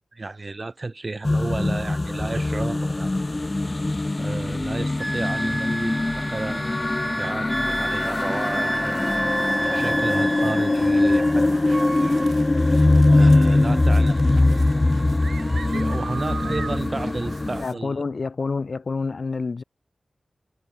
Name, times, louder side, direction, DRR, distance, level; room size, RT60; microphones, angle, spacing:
voice 1, 0.1-3.1 4.2-9.3 9.7-12.2 12.7-14.2 14.5-14.6 15.7-18.0, right 3 dB, 45° right, 4.3 m, -33 dB
sound 1, 1.2-17.6, left 2 dB, 35° left, 1.1 m, -21 dB
Wind instrument woodwind instrument, 5.0-11.4 11.7-12.3, right 1 dB, 15° right, 0.4 m, -30 dB
sound 2, 7.6-17.7, right 5 dB, 85° right, 3.6 m, -41 dB
voice 2, 17.6-19.6, left 4 dB, 65° left, 1.3 m, -28 dB
cardioid pair, 45°, 0 cm